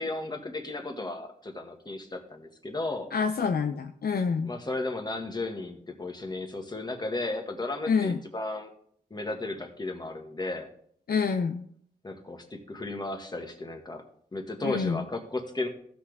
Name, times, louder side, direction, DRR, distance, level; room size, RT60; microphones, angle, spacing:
voice 1, 0.0-3.1 4.4-8.7 9.1-10.7 12.0-14.0 14.3-15.7, left 2 dB, 25° left, 3 dB, 1.8 m, -34 dB
voice 2, 3.1-4.5 7.9-8.2 11.1-11.7 14.6-15.0, left 5 dB, 60° left, 6 dB, 0.7 m, -27 dB
15.5 x 6.1 x 3.5 m, 0.64 s
cardioid pair, 70°, 17 cm